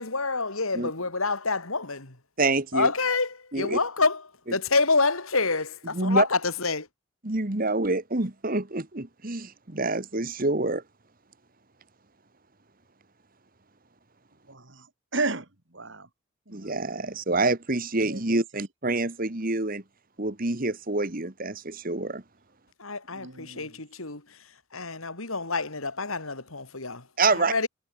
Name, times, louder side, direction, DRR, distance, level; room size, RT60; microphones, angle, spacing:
voice 1, 0.0-2.2 2.7-6.9 22.8-27.1 27.3-27.7, left 3 dB, 80° left, 4.0 m, -27 dB
voice 2, 2.4-2.9 3.5-3.8 5.9-6.3 7.2-10.8 16.5-19.8 20.2-22.2 27.2-27.5, right 2 dB, 40° right, 1.6 m, -27 dB
voice 3, 14.5-14.8 15.1-15.4 15.7-16.1 16.5-16.8 18.0-18.4 23.1-23.7, right 3 dB, 55° right, 2.9 m, -33 dB
head